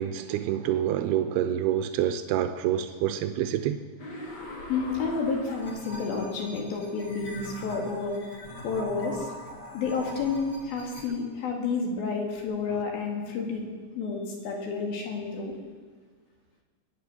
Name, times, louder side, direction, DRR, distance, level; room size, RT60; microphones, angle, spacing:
voice 1, 0.0-3.8, right 11 dB, 85° right, 9 dB, 2.7 m, -27 dB
sound 1, 4.0-11.0, equal, 35° left, 2.0 m, -42 dB
voice 2, 4.7-8.2 8.6-9.3 9.7-13.6 14.0-15.5, left 4 dB, 70° left, 1 dB, 3.8 m, -30 dB
22.0 x 10.0 x 6.1 m, 1.6 s
omnidirectional pair, 4.5 m